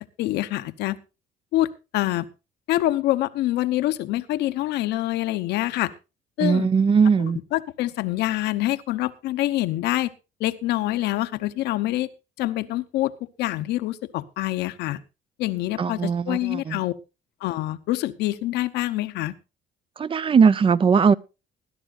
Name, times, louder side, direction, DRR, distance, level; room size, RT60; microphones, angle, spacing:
voice 1, 0.2-1.0 1.5-2.3 2.7-5.9 6.4-6.7 7.2-10.1 10.4-12.1 12.4-13.1 13.4-15.0 15.4-16.9 17.4-19.3, left 15 dB, 85° left, 1.0 m, -26 dB
voice 2, 6.4-7.4 15.8-16.8 20.0-21.1, right 6 dB, 30° right, 0.7 m, -19 dB
20.0 x 11.5 x 2.5 m
cardioid pair, 110°, 17 cm